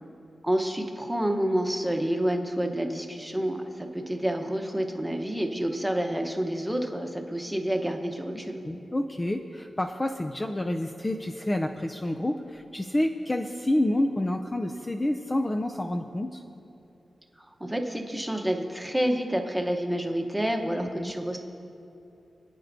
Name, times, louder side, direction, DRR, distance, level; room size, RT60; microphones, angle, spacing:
voice 1, 0.4-8.6 17.6-21.4, right 1 dB, 5° right, 3 dB, 1.0 m, -28 dB
voice 2, 8.6-16.4 20.8-21.1, left 1 dB, 20° left, 4 dB, 0.5 m, -28 dB
29.5 x 9.8 x 2.7 m, 2.8 s
wide cardioid pair, 140°, 0 cm